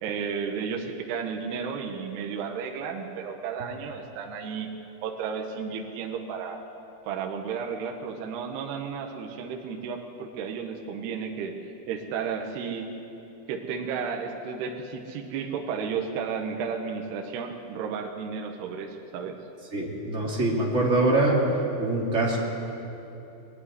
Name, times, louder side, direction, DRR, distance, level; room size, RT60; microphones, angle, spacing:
voice 1, 0.0-4.7 5.0-6.6 7.1-12.9 13.5-19.4, right 6 dB, 70° right, 2 dB, 2.8 m, -33 dB
voice 2, 19.7-21.4 21.8-22.4, right 2 dB, 20° right, -4 dB, 2.3 m, -24 dB
20.5 x 13.5 x 9.7 m, 2.9 s
omnidirectional pair, 5.7 m